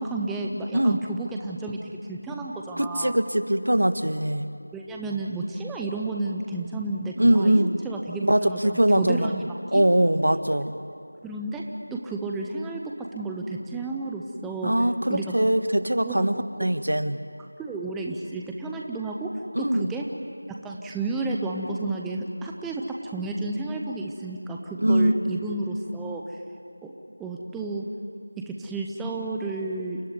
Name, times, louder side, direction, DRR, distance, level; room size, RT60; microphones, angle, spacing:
voice 1, 0.0-3.2 4.7-9.8 11.2-11.6 11.9-14.7 15.1-15.3 16.0-16.2 16.6-16.7 17.6-19.3 19.6-20.0 20.5-26.2 26.8-26.9 27.2-27.9 28.4-30.0, right 2 dB, 5° right, -1 dB, 0.6 m, -32 dB
voice 2, 2.8-4.5 7.2-7.8 8.2-9.3 9.7-10.7 14.6-16.3 16.6-17.2 19.5-19.9 24.8-25.4, right 1 dB, 80° right, 10 dB, 1.6 m, -22 dB
29.0 x 14.0 x 9.6 m, 2.4 s
figure-of-eight pair, 175°, 0 cm